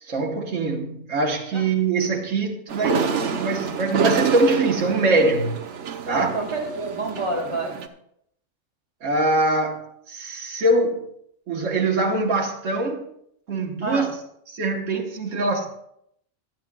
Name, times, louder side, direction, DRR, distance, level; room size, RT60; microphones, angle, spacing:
voice 1, 0.0-5.5 6.1-6.3 9.0-11.0 11.5-13.0 13.5-14.1 14.5-15.7, right 2 dB, 90° right, 1.6 m, -23 dB
sound 1, 2.7-7.9, right 7 dB, 75° right, 1.2 m, -28 dB
voice 2, 6.0-7.8 13.8-14.1, right 2 dB, 25° right, 1.5 m, -28 dB
18.0 x 12.0 x 2.3 m
omnidirectional pair, 1.3 m